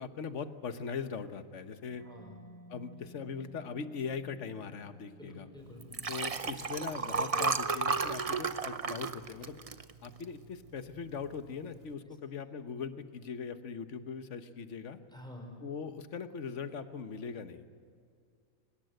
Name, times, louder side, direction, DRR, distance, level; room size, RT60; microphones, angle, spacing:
voice 1, 0.0-2.0 2.7-5.5 6.1-9.6 10.0-15.0 15.6-17.6, left 6 dB, 60° left, 10 dB, 1.4 m, -40 dB
Mallet percussion, 1.9-9.4, right 1 dB, 55° right, 5.2 m, -58 dB
voice 2, 2.0-2.4 5.2-6.1 12.1-12.2 15.1-15.6, left 1 dB, 5° left, 1 dB, 5.3 m, -49 dB
Liquid, 5.8-10.4 10.9-11.2 11.5-11.6, right 5 dB, 35° right, 0.7 m, -33 dB
23.5 x 20.5 x 7.9 m, 2.2 s
omnidirectional pair, 1.4 m